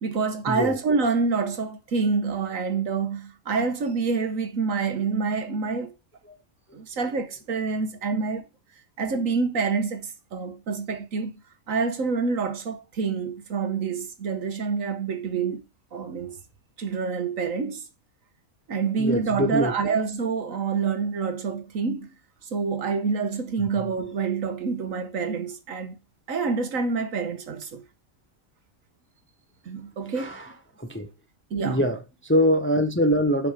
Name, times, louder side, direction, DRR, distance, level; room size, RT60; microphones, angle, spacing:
voice 1, 0.0-5.9 6.7-8.4 9.0-11.4 11.7-15.6 15.9-16.4 16.8-17.9 18.7-22.1 22.4-26.0 26.3-27.8 29.6-30.3 31.5-31.8, right 4 dB, 65° right, 1.5 m, -27 dB
voice 2, 19.0-20.0 23.6-23.7 30.1-31.1 31.6-33.5, equal, 10° left, 0.8 m, -24 dB
7.3 x 5.8 x 4.9 m
omnidirectional pair, 1.5 m